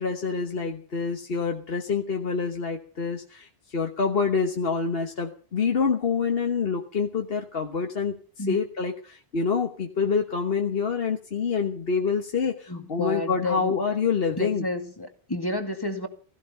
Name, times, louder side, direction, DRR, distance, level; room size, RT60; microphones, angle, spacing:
voice 1, 0.0-14.6, left 5 dB, 65° left, 3 dB, 1.5 m, -27 dB
voice 2, 12.7-13.8 14.3-16.1, left 2 dB, 20° left, 6 dB, 2.1 m, -30 dB
16.5 x 15.5 x 5.5 m, 0.41 s
omnidirectional pair, 1.1 m